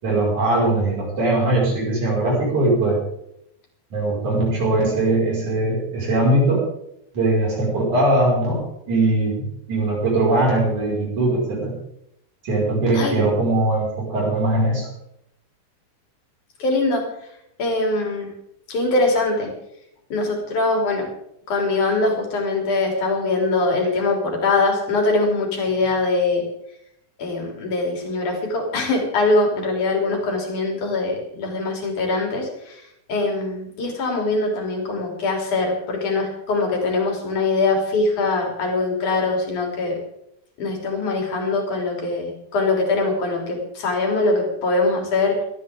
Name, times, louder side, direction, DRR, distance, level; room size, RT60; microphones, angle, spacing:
voice 1, 0.0-3.0 3.9-6.6 7.1-11.7 12.4-14.9, right 2 dB, 75° right, -4 dB, 7.3 m, -20 dB
voice 2, 16.6-17.0 17.6-18.3 18.7-19.5 20.1-21.1 21.5-26.4 27.2-32.8 33.1-40.0 40.6-45.4, left 3 dB, 80° left, 1 dB, 4.9 m, -22 dB
20.5 x 13.5 x 3.8 m, 0.77 s
omnidirectional pair, 3.4 m